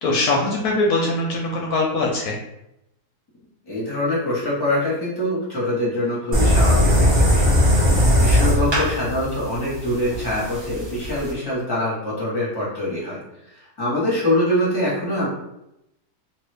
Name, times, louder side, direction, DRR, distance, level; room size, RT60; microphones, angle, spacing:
voice 1, 0.0-2.4, left 2 dB, 75° left, -1 dB, 1.0 m, -22 dB
voice 2, 3.7-7.6 8.2-13.2 13.8-15.3, left 1 dB, 15° left, -6 dB, 1.0 m, -24 dB
sound 1, 6.3-11.3, equal, 25° right, 0.6 m, -18 dB
2.8 x 2.5 x 3.3 m, 0.84 s
omnidirectional pair, 1.7 m